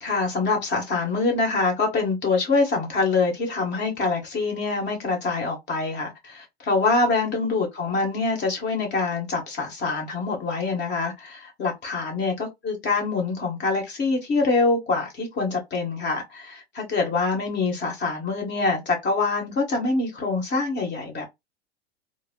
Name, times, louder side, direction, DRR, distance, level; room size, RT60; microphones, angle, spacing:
voice 1, 0.0-21.3, left 3 dB, 35° left, 1.2 m, -25 dB
3.1 x 2.0 x 2.4 m
hypercardioid pair, 100°, 32 cm